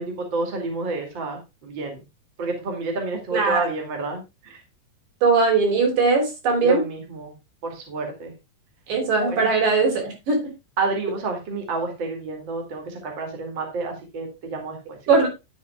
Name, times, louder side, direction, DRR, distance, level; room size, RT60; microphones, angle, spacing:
voice 1, 0.0-2.0 2.4-4.6 6.6-7.3 7.6-8.3 9.3-9.5 10.8-14.8 15.0-15.1, right 3 dB, 35° right, 2.7 m, -29 dB
voice 2, 3.3-3.7 5.2-6.8 8.9-10.4 15.1-15.3, right 4 dB, 70° right, 5.0 m, -20 dB
11.0 x 8.4 x 2.3 m
omnidirectional pair, 4.0 m